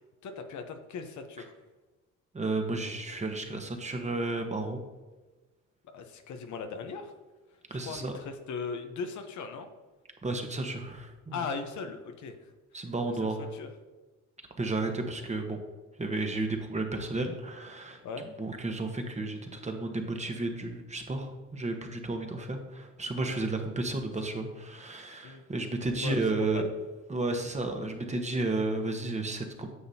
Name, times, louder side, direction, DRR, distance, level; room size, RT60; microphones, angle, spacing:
voice 1, 0.2-1.5 5.9-7.1 7.7-9.7 11.3-12.4 12.7-12.8 13.2-13.7 18.0-18.3 25.2-25.4 26.0-26.7, left 5 dB, 70° left, 6 dB, 1.0 m, -38 dB
voice 2, 2.3-4.8 7.7-8.1 10.2-11.4 12.7-13.4 14.6-15.6 16.0-18.0 18.4-26.6 27.1-29.7, right 2 dB, 25° right, 4 dB, 1.2 m, -32 dB
9.7 x 6.9 x 2.8 m, 1.2 s
cardioid pair, 90°, 30 cm